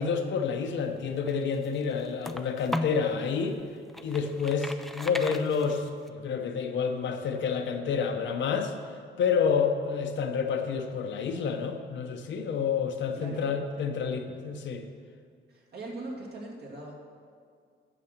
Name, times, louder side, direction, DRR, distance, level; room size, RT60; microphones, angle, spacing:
voice 1, 0.0-3.6 4.0-8.7 9.2-14.9, left 6 dB, 65° left, 5 dB, 0.9 m, -29 dB
sound 1, 1.0-3.1 3.6-6.1, left 1 dB, ahead, 0.4 m, -37 dB
voice 2, 13.1-13.5 15.5-16.9, right 2 dB, 55° right, -1 dB, 2.3 m, -40 dB
8.7 x 6.3 x 6.7 m, 2.2 s
cardioid pair, 90°, 20 cm